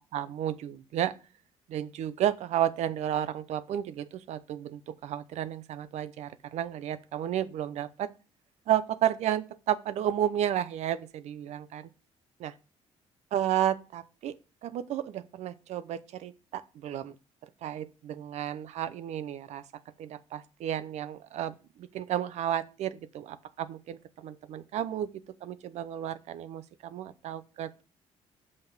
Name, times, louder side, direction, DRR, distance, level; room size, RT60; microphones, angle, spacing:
voice 1, 0.1-1.2 1.7-8.1 8.7-11.9 12.4-12.5 13.3-14.4 14.6-17.2 17.6-19.6 20.0-25.1 25.4-27.8, right 11 dB, 75° right, 0.7 m, -32 dB
5.9 x 5.3 x 6.0 m
cardioid pair, 110°, 12 cm